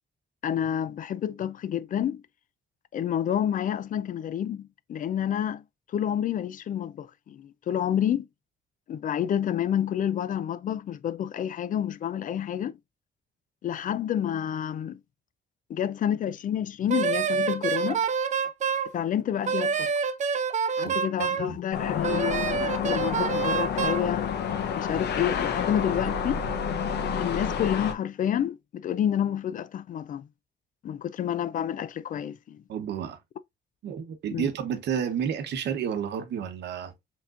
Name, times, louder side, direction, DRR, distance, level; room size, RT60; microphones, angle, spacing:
voice 1, 0.4-2.2 2.9-5.6 5.9-8.3 8.9-12.7 13.6-15.0 15.7-18.0 18.9-19.9 20.8-24.3 24.7-26.4 27.2-30.3 30.8-32.6 34.3-34.5, left 9 dB, 50° left, 0.4 m, -29 dB
Wind instrument woodwind instrument, 16.9-18.9 19.5-21.5 22.0-24.1, right 6 dB, 45° right, 0.6 m, -27 dB
sound 1, 21.7-27.9, left 7 dB, 75° left, 0.8 m, -29 dB
voice 2, 32.7-33.2 33.8-36.9, right 8 dB, 80° right, 1.0 m, -30 dB
4.8 x 3.6 x 2.5 m
cardioid pair, 140°, 18 cm